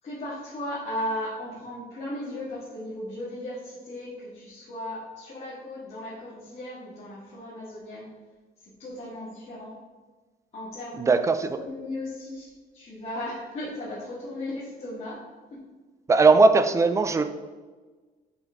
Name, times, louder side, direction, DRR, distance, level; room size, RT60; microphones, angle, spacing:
voice 1, 0.0-8.1 8.6-9.8 10.5-11.1 11.5-12.5 12.7-15.2 16.2-16.3, left 1 dB, 40° left, -8 dB, 1.9 m, -36 dB
voice 2, 11.0-11.6 16.1-17.2, right 3 dB, 15° right, 10 dB, 0.4 m, -19 dB
6.3 x 5.3 x 3.6 m, 1.3 s
cardioid pair, 110°, 17 cm